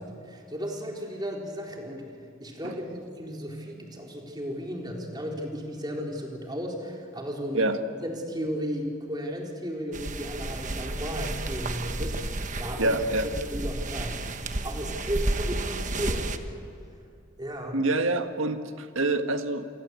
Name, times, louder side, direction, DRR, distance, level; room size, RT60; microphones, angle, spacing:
voice 1, 0.2-2.0 2.4-7.7 8.0-13.0 13.5-14.2 14.6-16.3 17.4-17.8, equal, 20° right, 0 dB, 4.1 m, -34 dB
sound 1, 9.9-16.4, right 2 dB, 40° right, 1.3 m, -32 dB
voice 2, 12.8-13.2 17.7-19.6, right 2 dB, 80° right, 7 dB, 1.7 m, -26 dB
28.5 x 23.5 x 8.3 m, 2.5 s
head